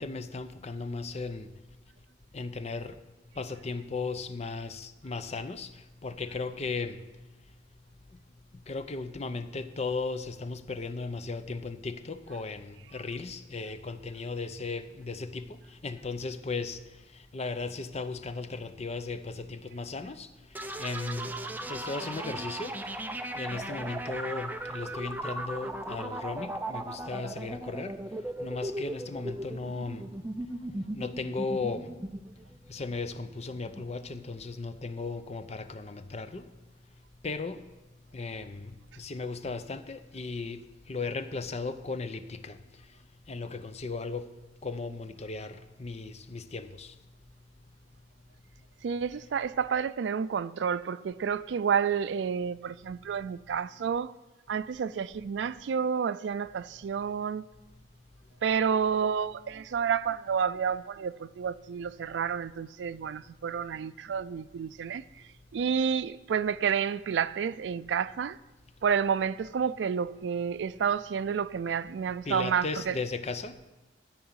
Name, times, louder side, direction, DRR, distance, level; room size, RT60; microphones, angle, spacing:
voice 1, 0.0-1.5 2.3-3.0 3.3-7.0 8.1-8.2 8.5-21.4 21.7-23.0 23.3-30.1 30.9-31.9 32.7-36.5 37.2-37.7 38.1-43.0 43.3-47.0 72.2-73.6, left 3 dB, 35° left, 0.6 m, -36 dB
sound 1, 20.5-34.2, right 1 dB, 10° right, 0.5 m, -37 dB
voice 2, 48.8-54.1 54.5-57.4 58.4-65.0 65.5-68.4 68.8-73.0, right 7 dB, 75° right, 0.3 m, -30 dB
13.5 x 4.7 x 8.0 m
head